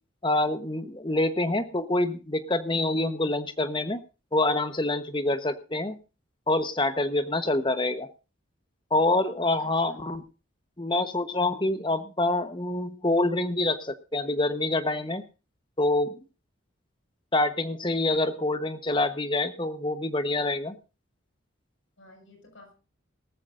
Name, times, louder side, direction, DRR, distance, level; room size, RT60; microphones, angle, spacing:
voice 1, 0.2-4.0 4.3-6.0 6.5-8.1 8.9-10.2 10.8-15.2 15.8-16.2 17.3-20.8, left 2 dB, 25° left, 11 dB, 1.1 m, -26 dB
voice 2, 9.6-10.2 22.0-22.7, left 2 dB, 70° left, 4 dB, 6.0 m, -53 dB
18.5 x 14.0 x 2.6 m, 0.33 s
head